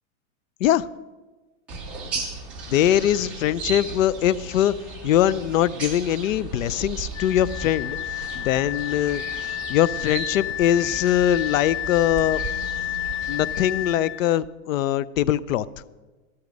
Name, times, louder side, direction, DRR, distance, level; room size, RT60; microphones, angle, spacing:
sound 1, 1.7-13.9, right 4 dB, 5° right, 0.4 m, -36 dB
voice 1, 2.7-4.7 5.0-12.4 13.3-15.6, left 11 dB, 70° left, 19 dB, 0.7 m, -22 dB
Wind instrument woodwind instrument, 7.1-14.2, left 13 dB, 35° left, 2.1 m, -31 dB
14.5 x 12.5 x 5.3 m, 1.2 s
supercardioid pair, 170°, 41 cm